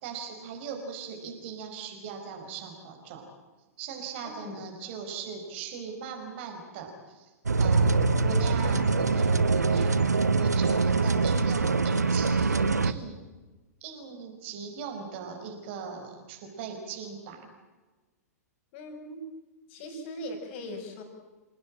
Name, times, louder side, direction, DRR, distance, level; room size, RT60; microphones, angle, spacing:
voice 1, 0.0-3.3 3.8-7.3 7.6-13.2 13.8-17.5, right 6 dB, 40° right, 3 dB, 5.0 m, -40 dB
voice 2, 4.2-4.6 18.7-19.2 19.7-21.0, left 1 dB, 40° left, 5 dB, 5.9 m, -40 dB
sound 1, 7.5-12.9, right 4 dB, 75° right, 1.1 m, -24 dB
28.5 x 17.5 x 8.8 m, 1.2 s
figure-of-eight pair, 105°, 9 cm